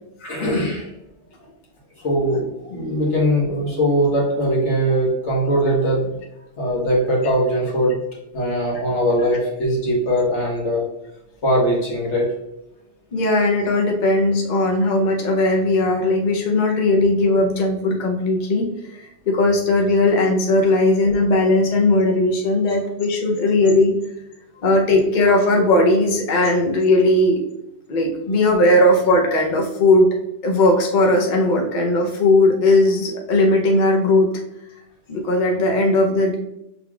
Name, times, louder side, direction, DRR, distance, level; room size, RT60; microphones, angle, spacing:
voice 1, 0.2-0.9 2.0-6.1 6.6-8.0 8.3-10.8 11.4-12.3, equal, 80° left, -3 dB, 1.6 m, -20 dB
voice 2, 13.1-23.9 24.6-27.4 27.9-30.1 30.4-34.3 35.1-36.4, left 2 dB, 50° left, 1 dB, 0.8 m, -18 dB
6.5 x 3.4 x 2.3 m, 0.86 s
omnidirectional pair, 1.2 m